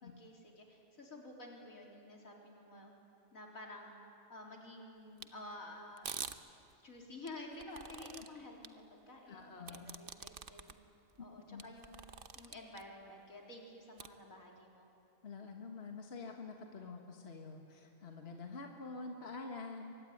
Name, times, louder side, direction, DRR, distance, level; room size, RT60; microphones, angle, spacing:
voice 1, 0.0-2.9 3.3-3.9 4.3-6.1 6.8-10.8 11.2-12.1 12.3-14.9, left 2 dB, 75° left, 0 dB, 4.3 m, -51 dB
sound 1, 5.2-5.3 6.0-6.4 7.3-8.3 8.6-8.7 9.7-10.7 11.2-11.3 11.6-12.8 14.0-14.1, right 6 dB, 45° right, 1.0 m, -45 dB
voice 2, 9.3-9.9 11.5-11.6 15.2-19.9, left 4 dB, 50° left, 2 dB, 1.9 m, -47 dB
24.0 x 23.0 x 10.0 m, 2.6 s
omnidirectional pair, 1.4 m